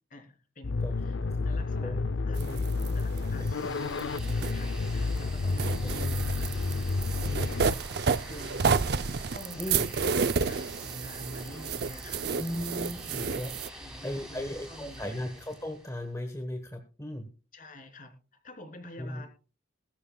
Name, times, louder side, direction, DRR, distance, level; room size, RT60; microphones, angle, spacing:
voice 1, 0.1-1.2 1.4-2.0 2.2-6.4 7.2-9.8 10.4-12.6 13.7-15.3 17.5-18.1 18.4-19.3, left 1 dB, 45° left, 4 dB, 3.6 m, -47 dB
sound 1, 0.6-7.7, left 3 dB, 80° left, 0.6 m, -30 dB
voice 2, 1.8-3.7 5.8-5.9 9.6-9.9 12.4-13.5 14.0-17.3 19.0-19.2, left 1 dB, 15° left, 5 dB, 1.2 m, -37 dB
sound 2, 2.4-5.2 5.5-13.7, right 5 dB, 60° right, 0.6 m, -31 dB
sound 3, 3.3-16.0, right 1 dB, 5° right, 4.0 m, -46 dB
20.5 x 12.5 x 2.3 m, 0.35 s
head